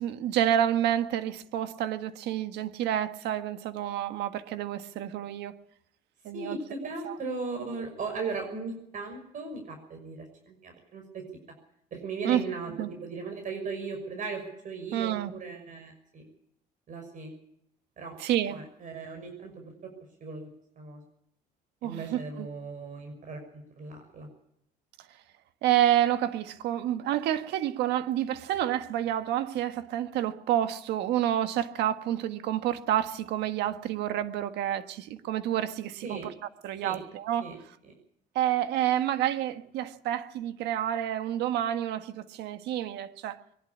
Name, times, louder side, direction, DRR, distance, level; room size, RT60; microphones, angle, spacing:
voice 1, 0.0-5.5 6.2-6.6 7.0-7.2 12.2-12.4 12.8-12.9 14.9-15.3 18.2-18.6 21.8-22.5 25.6-36.3 36.6-37.5 38.3-43.4, right 11 dB, 85° right, 1.6 m, -29 dB
voice 2, 6.3-11.0 11.9-12.7 13.0-16.2 16.9-17.3 18.0-18.2 18.5-19.6 20.2-20.5 20.8-21.0 21.8-24.3 36.0-36.3 36.8-37.0 37.4-37.6 37.8-37.9, right 4 dB, 50° right, 6.1 m, -37 dB
22.5 x 11.5 x 9.9 m
cardioid pair, 110°, 17 cm